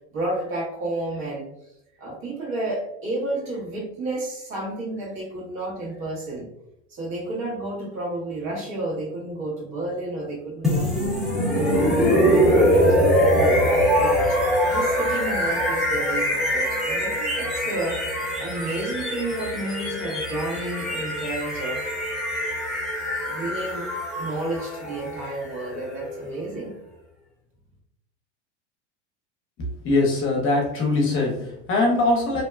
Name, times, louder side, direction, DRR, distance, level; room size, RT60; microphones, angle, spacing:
voice 1, 0.1-1.5 2.0-6.5 6.9-11.1 11.5-13.6 14.0-18.0 18.4-21.9 23.2-23.9 24.2-26.8, right 2 dB, 55° right, -3 dB, 1.3 m, -31 dB
sound 1, 10.6-26.5, equal, ahead, 0.6 m, -23 dB
voice 2, 29.6-32.4, left 2 dB, 35° left, 0 dB, 0.8 m, -22 dB
2.7 x 2.1 x 2.3 m, 0.82 s
hypercardioid pair, 95°, 35 cm